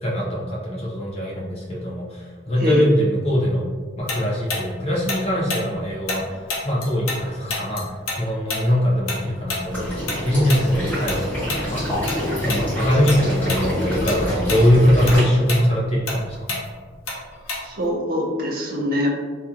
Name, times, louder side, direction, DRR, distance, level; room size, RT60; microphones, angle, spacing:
voice 1, 0.0-3.7 4.0-6.4 6.6-7.9 8.2-12.1 12.4-16.6, equal, 30° left, -4 dB, 0.5 m, -22 dB
Tick-tock, 4.1-7.2 7.5-12.2 12.5-12.7 13.1-13.7 13.9-17.9, left 3 dB, 90° left, 0.6 m, -29 dB
Water / Liquid, 9.7-15.2, equal, 10° left, 1.3 m, -26 dB
voice 2, 17.6-19.1, equal, 45° right, -1 dB, 0.5 m, -23 dB
2.8 x 2.3 x 2.4 m, 1.5 s
head